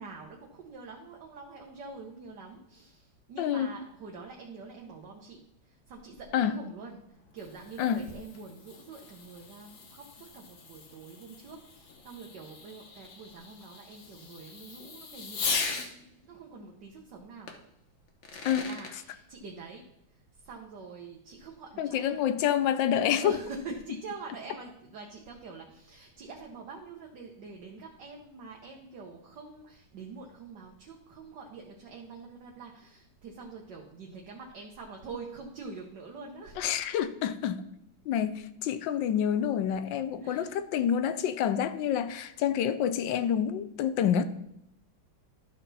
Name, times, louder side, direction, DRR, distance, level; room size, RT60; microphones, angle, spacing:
voice 1, 0.0-17.5 18.5-22.2 23.2-36.6 40.2-40.6, right 4 dB, 65° right, 1.5 m, -45 dB
voice 2, 3.4-3.7 6.3-6.6 7.8-8.0 18.4-18.7 21.8-23.3 36.6-37.6 38.1-44.2, left 9 dB, 75° left, 1.2 m, -28 dB
Fireworks, 7.1-15.9 17.5-17.6 18.1-18.9, left 5 dB, 45° left, 1.0 m, -39 dB
12.5 x 5.8 x 4.1 m
omnidirectional pair, 2.2 m